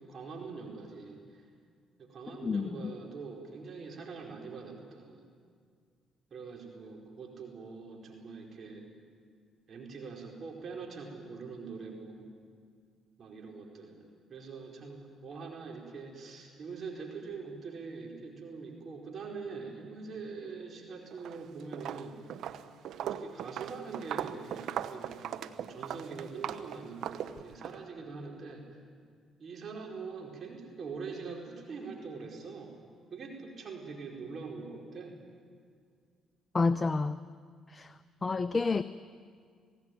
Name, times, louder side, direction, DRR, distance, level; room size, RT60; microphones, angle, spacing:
voice 1, 0.0-1.4 2.0-5.2 6.3-8.9 9.7-12.3 13.2-22.2 23.0-28.7 29.4-32.8 33.1-35.2, right 4 dB, 50° right, 0 dB, 4.7 m, -43 dB
voice 2, 2.4-2.9 36.5-37.2 37.7-37.9 38.2-38.8, left 4 dB, 30° left, 13 dB, 0.7 m, -29 dB
Walk footsteps, 21.1-21.4 21.7-27.8, right 10 dB, 65° right, 0.9 m, -39 dB
27.0 x 17.5 x 9.4 m, 2.1 s
hypercardioid pair, 55°, 0 cm